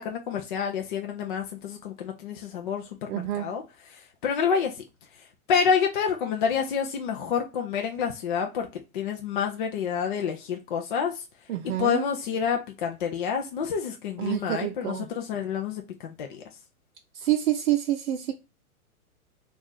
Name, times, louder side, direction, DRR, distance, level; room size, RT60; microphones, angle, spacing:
voice 1, 0.0-4.8 5.5-8.7 8.9-11.2 11.6-16.4, left 6 dB, 35° left, 0.4 m, -28 dB
voice 2, 3.1-3.5 11.5-12.0 14.2-15.1 17.1-18.3, right 12 dB, 70° right, 0.6 m, -27 dB
2.6 x 2.4 x 3.8 m
hypercardioid pair, 125°, 44 cm